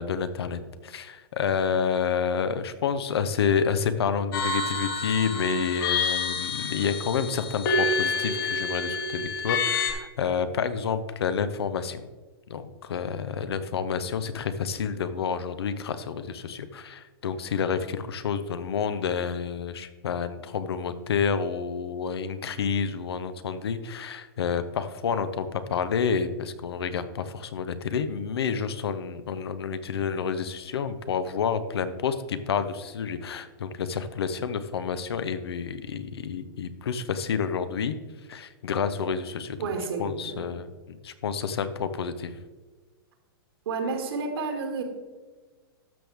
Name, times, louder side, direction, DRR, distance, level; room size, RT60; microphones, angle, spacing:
voice 1, 0.0-12.0 12.5-38.0 38.3-39.6 40.0-42.3, left 6 dB, 85° left, 11 dB, 0.8 m, -29 dB
sound 1, 4.3-9.9, left 3 dB, 60° left, 1.7 m, -28 dB
voice 2, 39.6-40.6 43.7-44.8, right 4 dB, 75° right, 3 dB, 2.2 m, -31 dB
12.5 x 6.3 x 3.5 m, 1.3 s
hypercardioid pair, 145°, 13 cm